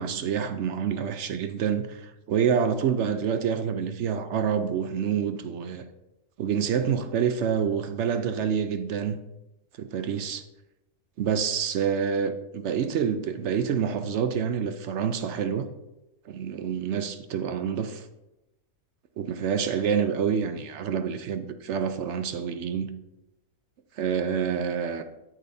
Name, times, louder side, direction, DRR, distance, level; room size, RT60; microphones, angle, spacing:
voice 1, 0.0-5.8 6.4-9.2 9.8-10.4 11.2-15.7 16.3-18.1 19.2-22.9 23.9-25.0, right 7 dB, 65° right, 0.8 m, -27 dB
8.8 x 8.7 x 2.7 m
omnidirectional pair, 1.5 m